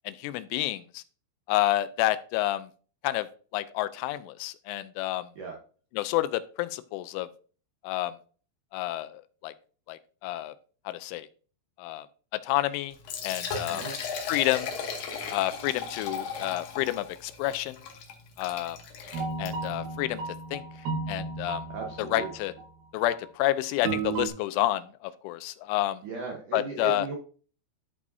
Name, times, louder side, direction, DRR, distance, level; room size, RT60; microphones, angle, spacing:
voice 1, 0.1-1.0 1.5-2.7 3.0-3.3 3.5-5.3 5.9-7.3 7.8-8.2 8.7-9.5 9.9-10.5 10.9-11.3 11.8-12.1 12.3-13.0 13.2-13.8 14.3-14.7 15.3-17.8 18.4-18.8 19.4-20.6 21.1-21.7 22.0-22.5 22.9-26.0 26.5-27.1, left 15 dB, 90° left, 14 dB, 3.0 m, -29 dB
Liquid, 12.9-19.8, left 5 dB, 70° left, 2.2 m, -37 dB
sound 1, 19.1-22.7 23.0-23.3 23.9-24.3, right 4 dB, 70° right, 2.6 m, -34 dB
voice 2, 21.7-22.3 26.0-27.1, right 4 dB, 85° right, 0 dB, 1.8 m, -36 dB
13.5 x 4.8 x 2.7 m, 0.40 s
omnidirectional pair, 5.5 m